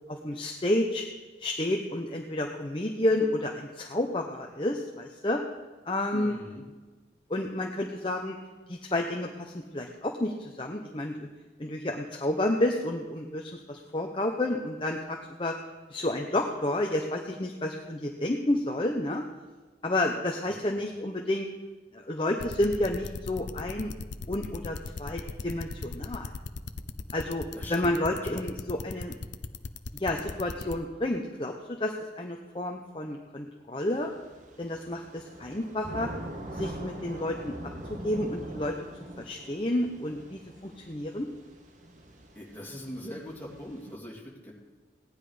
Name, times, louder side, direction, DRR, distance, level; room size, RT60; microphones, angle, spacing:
voice 1, 0.1-1.0 1.4-5.4 5.8-6.4 7.3-8.4 8.7-11.3 11.6-15.5 15.9-19.2 19.8-21.5 21.9-23.9 24.3-26.3 27.1-29.1 30.0-31.5 31.8-34.1 34.6-36.1 36.5-37.5 37.9-38.7 39.2-41.3, left 1 dB, 30° left, 1 dB, 0.8 m, -30 dB
voice 2, 6.1-6.6 20.5-20.7 27.5-27.9 28.2-28.5 42.3-44.5, equal, 10° left, -5 dB, 2.9 m, -41 dB
sound 1, 22.4-30.7, left 4 dB, 80° left, 0.6 m, -37 dB
Thunder / Rain, 34.0-43.9, right 1 dB, 45° right, 1.3 m, -43 dB
17.0 x 10.0 x 5.0 m, 1.3 s
head